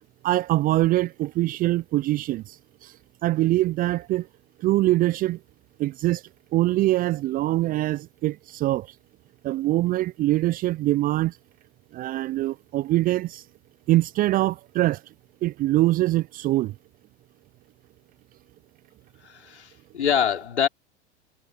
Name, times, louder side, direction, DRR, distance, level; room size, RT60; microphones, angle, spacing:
voice 1, 0.2-2.6 2.8-2.9 3.2-4.3 4.6-5.4 5.8-6.2 6.5-8.9 9.4-11.3 11.9-13.4 13.9-15.0 15.4-16.7, right 16 dB, 25° right, 0.5 m, -23 dB
voice 2, 19.2-20.7, left 8 dB, 75° left, 5.1 m, -25 dB
figure-of-eight pair, 90°, 34 cm